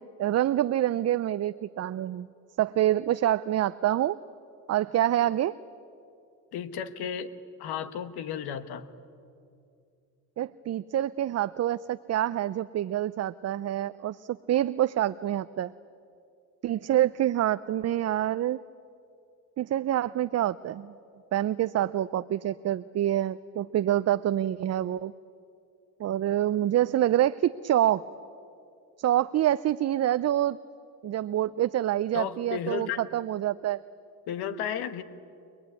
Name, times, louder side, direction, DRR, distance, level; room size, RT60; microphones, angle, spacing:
voice 1, 0.0-2.3 2.6-4.2 4.7-5.5 10.4-15.7 16.6-18.6 19.6-20.9 21.3-25.1 26.0-28.0 29.0-30.6 31.0-33.8, right 12 dB, 45° right, 14 dB, 0.5 m, -26 dB
voice 2, 6.5-7.3 7.6-8.9 32.1-33.0 34.3-35.0, left 8 dB, 80° left, 12 dB, 1.4 m, -33 dB
25.0 x 20.5 x 9.6 m, 2.5 s
cardioid pair, 90°, 38 cm